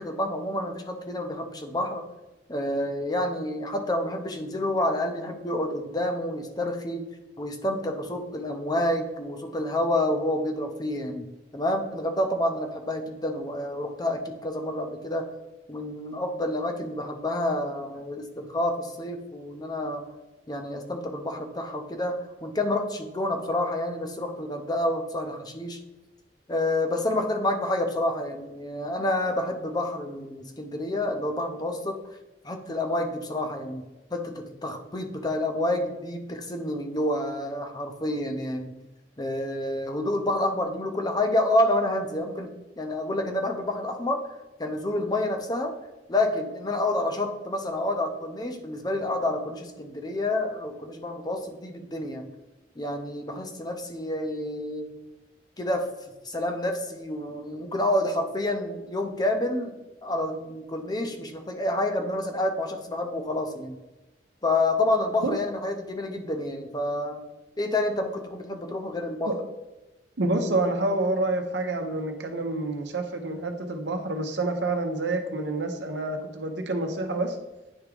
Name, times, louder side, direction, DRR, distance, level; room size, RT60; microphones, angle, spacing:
voice 1, 0.0-2.0 2.5-7.1 7.4-11.3 11.5-15.3 15.7-20.0 20.5-25.8 26.5-32.0 32.4-33.8 34.1-38.7 39.2-44.2 44.6-45.8 46.1-52.2 52.8-54.9 55.6-55.9 56.2-63.7 64.4-67.2 67.6-69.3, left 1 dB, 20° left, 5 dB, 0.6 m, -28 dB
voice 2, 70.2-77.4, right 2 dB, 70° right, 5 dB, 0.8 m, -28 dB
9.8 x 3.6 x 3.4 m, 1.0 s
head